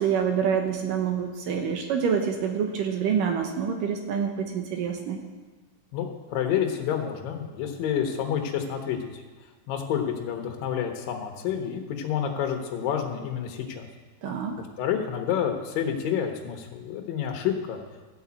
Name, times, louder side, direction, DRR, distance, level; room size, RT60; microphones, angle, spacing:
voice 1, 0.0-5.2 14.2-14.6, right 7 dB, 75° right, 4 dB, 2.3 m, -27 dB
voice 2, 5.9-9.2 9.7-13.9 14.6-17.8, left 8 dB, 70° left, 4 dB, 2.8 m, -29 dB
14.0 x 5.6 x 8.5 m, 1.3 s
omnidirectional pair, 4.4 m